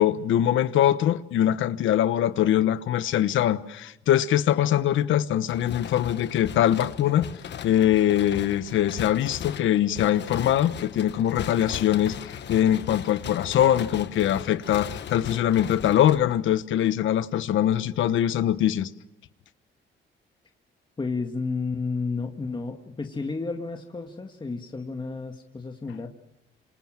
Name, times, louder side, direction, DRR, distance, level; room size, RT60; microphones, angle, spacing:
voice 1, 0.0-7.3 7.6-18.9, left 11 dB, 80° left, 1.2 m, -22 dB
sound 1, 5.5-16.7, left 9 dB, 60° left, 1.5 m, -38 dB
voice 2, 21.0-26.1, left 4 dB, 25° left, 2.1 m, -31 dB
27.0 x 27.0 x 7.5 m
cardioid pair, 90°, 20 cm